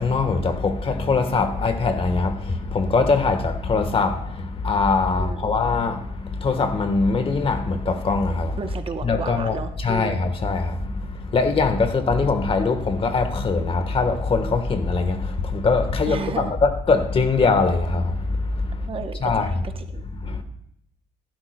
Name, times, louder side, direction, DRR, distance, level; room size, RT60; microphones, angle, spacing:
voice 1, 0.0-8.7 9.0-18.9 19.2-19.6 20.2-20.4, left 4 dB, 35° left, 1.3 m, -22 dB
voice 2, 5.2-5.5 8.6-10.2 16.1-16.5 18.9-20.0, right 5 dB, 35° right, 0.9 m, -33 dB
15.0 x 12.5 x 2.2 m
cardioid pair, 110°, 17 cm